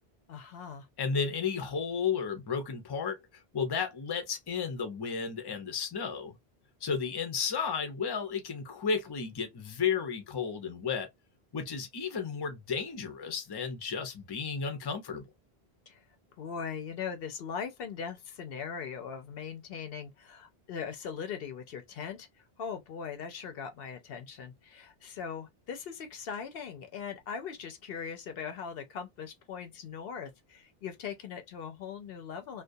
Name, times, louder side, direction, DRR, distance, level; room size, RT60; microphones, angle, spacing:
voice 1, 0.3-0.9 15.9-16.0 16.4-22.3 22.6-32.6, left 6 dB, 70° left, 0.8 m, -40 dB
voice 2, 1.0-3.2 3.5-6.4 6.8-11.1 11.5-15.2, left 6 dB, 30° left, 0.5 m, -33 dB
2.3 x 2.2 x 2.5 m
omnidirectional pair, 1.0 m